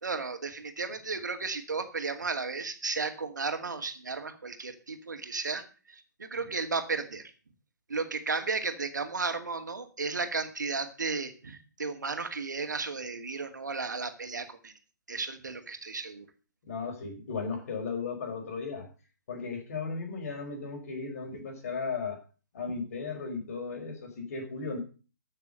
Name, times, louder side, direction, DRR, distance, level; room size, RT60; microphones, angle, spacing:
voice 1, 0.0-7.2 7.9-14.7 15.1-16.3, right 4 dB, 70° right, 8 dB, 2.2 m, -34 dB
voice 2, 16.6-18.9 19.3-22.2 22.5-24.8, left 4 dB, 50° left, 3 dB, 4.9 m, -36 dB
14.0 x 6.6 x 6.7 m, 0.36 s
figure-of-eight pair, 130°, 10 cm